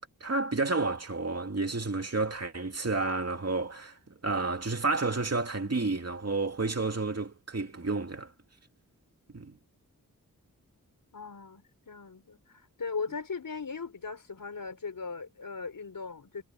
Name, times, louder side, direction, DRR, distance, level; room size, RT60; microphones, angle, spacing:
voice 1, 0.2-8.3 9.3-9.6, right 3 dB, 45° right, 2.6 m, -30 dB
voice 2, 11.1-16.4, left 5 dB, 70° left, 4.5 m, -38 dB
wide cardioid pair, 100°, 34 cm